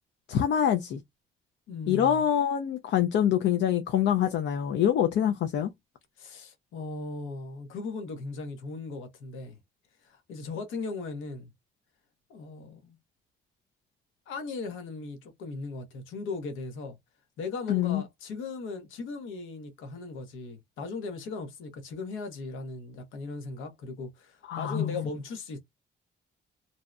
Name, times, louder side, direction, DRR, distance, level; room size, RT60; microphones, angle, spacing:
voice 1, 0.3-1.0 1.9-5.7 17.7-18.0 24.5-25.0, left 10 dB, 65° left, 0.4 m, -25 dB
voice 2, 1.7-2.2 6.2-9.6 10.0-11.5 12.3-13.0 14.3-17.0 17.4-25.6, left 3 dB, 85° left, 0.8 m, -38 dB
2.7 x 2.0 x 2.3 m
cardioid pair, 90°, 20 cm